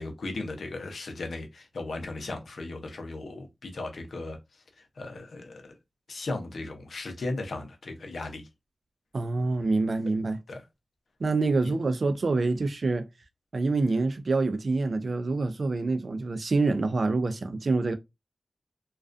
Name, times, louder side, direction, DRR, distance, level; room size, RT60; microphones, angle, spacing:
voice 1, 0.0-4.4 5.0-5.8 6.1-8.5 10.5-10.6 11.6-11.7, left 2 dB, 85° left, 0.6 m, -36 dB
voice 2, 9.1-10.4 11.2-13.1 13.5-17.9, right 3 dB, 65° right, 0.4 m, -26 dB
2.4 x 2.2 x 2.5 m
wide cardioid pair, 70°, 0 cm